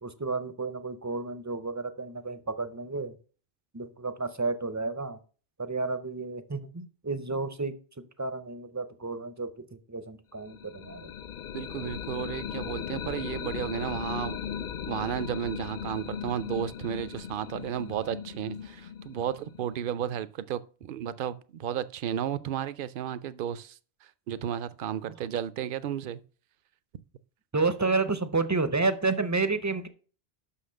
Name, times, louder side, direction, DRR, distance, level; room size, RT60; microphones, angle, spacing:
voice 1, 0.0-3.1 3.7-5.2 5.6-7.7 8.2-11.1 25.0-25.1 27.5-29.9, right 3 dB, 20° right, 0.5 m, -31 dB
sound 1, 10.4-20.2, left 8 dB, 60° left, 0.6 m, -38 dB
voice 2, 11.5-26.2, right 10 dB, 60° right, 0.7 m, -33 dB
6.2 x 5.8 x 6.3 m
omnidirectional pair, 1.1 m